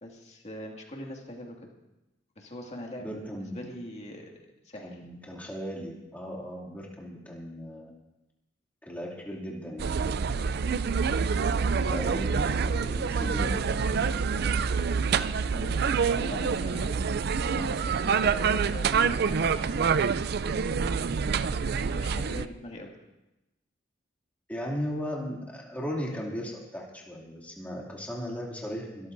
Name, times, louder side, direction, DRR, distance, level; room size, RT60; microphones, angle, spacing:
voice 1, 0.0-1.7 2.4-3.1 3.3-4.3 4.7-5.0 15.5-17.0 17.5-20.2 21.6-22.9, left 1 dB, 35° left, 0 dB, 2.2 m, -42 dB
voice 2, 3.0-3.6 4.8-7.9 8.8-9.9 11.7-14.1 24.5-29.1, equal, 10° left, -3 dB, 2.5 m, -37 dB
sound 1, 9.8-22.4, right 5 dB, 60° right, 0.4 m, -27 dB
25.0 x 13.5 x 2.6 m, 0.96 s
head